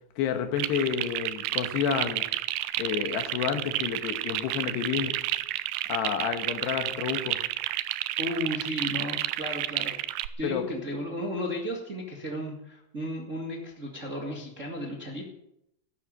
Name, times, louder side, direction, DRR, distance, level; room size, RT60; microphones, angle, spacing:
voice 1, 0.2-2.3 2.8-5.1 5.9-7.4 10.4-10.7, left 8 dB, 85° left, 7 dB, 3.4 m, -29 dB
sound 1, 0.6-10.3, right 16 dB, 85° right, 2.7 m, -31 dB
voice 2, 8.2-15.2, left 1 dB, 40° right, -1 dB, 1.1 m, -34 dB
14.0 x 10.5 x 7.6 m, 0.82 s
omnidirectional pair, 4.7 m